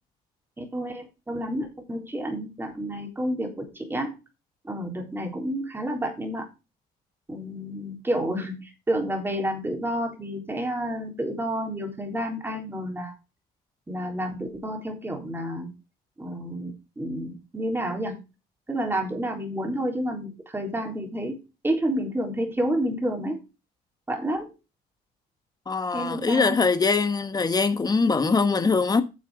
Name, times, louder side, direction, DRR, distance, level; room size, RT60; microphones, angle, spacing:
voice 1, 0.6-4.1 4.6-6.5 7.3-13.1 13.9-15.7 16.2-18.2 18.7-21.4 21.6-23.4 24.1-24.5 25.9-26.6, equal, 15° right, 3.7 m, -30 dB
voice 2, 25.7-29.0, left 4 dB, 25° left, 1.3 m, -22 dB
9.7 x 6.8 x 4.9 m
cardioid pair, 110°, 17 cm